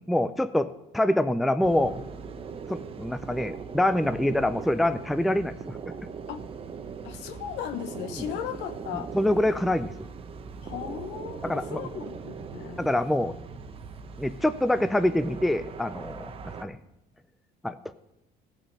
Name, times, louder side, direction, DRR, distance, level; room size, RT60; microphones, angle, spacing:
voice 1, 0.1-2.0 2.7-5.8 9.1-10.1 11.4-11.8 12.8-13.3 14.2-16.3 16.6-16.8 17.6-17.8, left 1 dB, ahead, 11 dB, 0.3 m, -25 dB
sound 1, 1.6-16.6, right 6 dB, 30° right, 0.8 m, -40 dB
voice 2, 7.0-9.1 10.6-12.9, left 10 dB, 75° left, 10 dB, 1.0 m, -36 dB
16.5 x 6.2 x 5.5 m, 0.87 s
cardioid pair, 150°, 18 cm